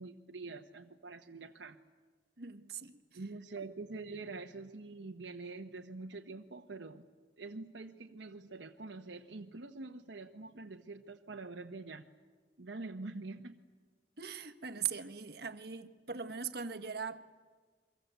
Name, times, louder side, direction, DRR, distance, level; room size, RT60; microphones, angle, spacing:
voice 1, 0.0-1.8 3.1-7.1 7.4-12.0 12.6-13.6, right 3 dB, 80° right, 2 dB, 1.1 m, -45 dB
voice 2, 2.4-2.9 14.2-17.2, right 7 dB, 60° right, 9 dB, 1.5 m, -40 dB
29.0 x 24.0 x 8.1 m, 1.5 s
head